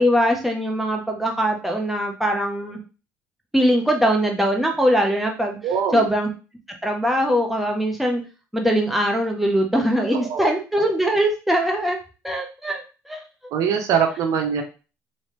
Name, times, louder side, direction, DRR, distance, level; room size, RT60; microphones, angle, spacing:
voice 1, 0.0-2.8 3.5-5.6 5.9-6.3 6.8-8.2 8.5-12.0 12.2-13.2, equal, 5° right, 2 dB, 0.9 m, -21 dB
voice 2, 5.6-6.0 10.1-10.5 13.5-14.6, right 7 dB, 70° right, 5 dB, 0.7 m, -22 dB
3.1 x 2.8 x 3.2 m, 0.33 s
supercardioid pair, 85°, 6 cm